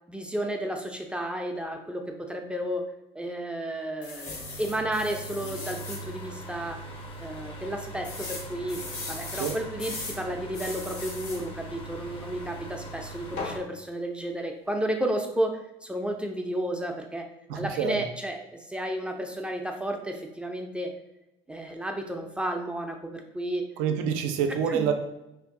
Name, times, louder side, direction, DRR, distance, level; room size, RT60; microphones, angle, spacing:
voice 1, 0.1-6.8 7.2-17.3 17.5-20.9 21.5-23.7 24.7-24.9, right 1 dB, 10° right, 3 dB, 0.4 m, -32 dB
sound 1, 4.0-6.0 6.6-6.7 6.9-7.0 8.0-10.2 10.5-11.4 13.4-13.6, left 3 dB, 70° left, 0.9 m, -38 dB
sound 2, 4.3-13.6, right 2 dB, 40° left, 0.7 m, -41 dB
voice 2, 17.5-18.0 23.8-24.9, right 7 dB, 80° right, 6 dB, 0.4 m, -27 dB
2.5 x 2.5 x 3.5 m, 0.90 s
supercardioid pair, 80°, 14 cm